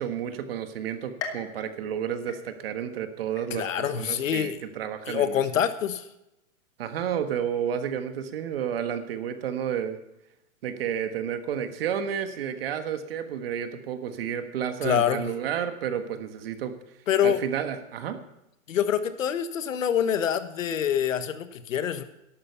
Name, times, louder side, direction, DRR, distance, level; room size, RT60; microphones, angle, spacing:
voice 1, 0.0-5.4 6.8-10.0 10.6-16.7 17.2-18.2, right 8 dB, 45° right, 8 dB, 1.4 m, -31 dB
sound 1, 1.2-2.9 3.4-3.9 4.4-4.5 5.5-5.6, left 6 dB, 10° left, 0.6 m, -41 dB
voice 2, 3.5-4.6 5.1-6.1 14.8-15.3 17.1-17.4 18.7-22.0, left 9 dB, 70° left, 11 dB, 1.3 m, -26 dB
13.0 x 11.5 x 5.7 m, 0.89 s
hypercardioid pair, 165°, 41 cm